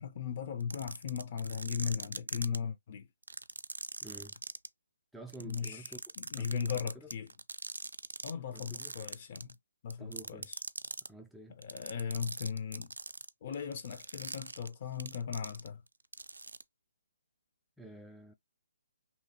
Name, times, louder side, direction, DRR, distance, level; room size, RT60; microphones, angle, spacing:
voice 1, 0.0-3.1 5.4-5.8 6.2-7.3 8.2-9.5 9.8-10.6 11.6-12.9 13.4-15.8, left 7 dB, 40° left, 0.6 m, -37 dB
sound 1, 0.6-2.6 3.2-4.7 5.3-8.3 8.6-9.5 9.9-11.1 11.6-15.9 16.1-16.6, right 3 dB, 85° right, 0.3 m, -41 dB
voice 2, 4.0-4.3 5.1-6.0 6.3-7.1 8.5-9.0 10.0-10.5 11.1-11.6 17.8-18.3, right 2 dB, ahead, 0.3 m, -49 dB
2.8 x 2.8 x 2.7 m
figure-of-eight pair, 145°, 0 cm